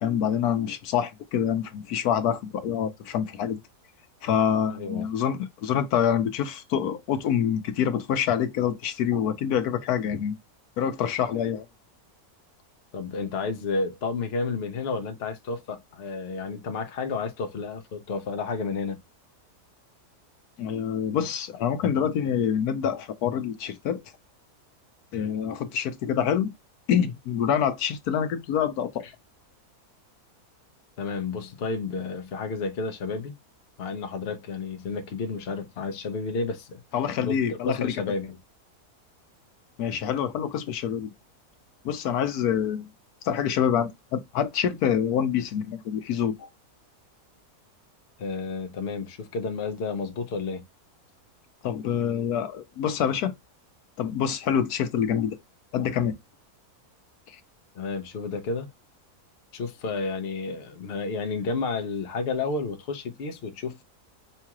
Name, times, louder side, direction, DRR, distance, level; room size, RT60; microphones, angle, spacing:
voice 1, 0.0-3.6 4.2-10.3 10.8-11.7 20.6-24.0 25.1-26.5 26.9-29.0 36.9-38.0 39.8-41.1 41.8-42.9 43.2-46.5 51.6-53.3 54.0-55.4 55.7-56.1 57.3-57.4, left 8 dB, 80° left, 1.2 m, -26 dB
voice 2, 4.7-5.1 12.9-19.0 31.0-33.3 33.8-36.8 37.2-38.4 48.2-50.6 57.7-58.7 59.5-63.8, left 4 dB, 50° left, 0.8 m, -31 dB
5.5 x 2.4 x 2.9 m
omnidirectional pair, 1.6 m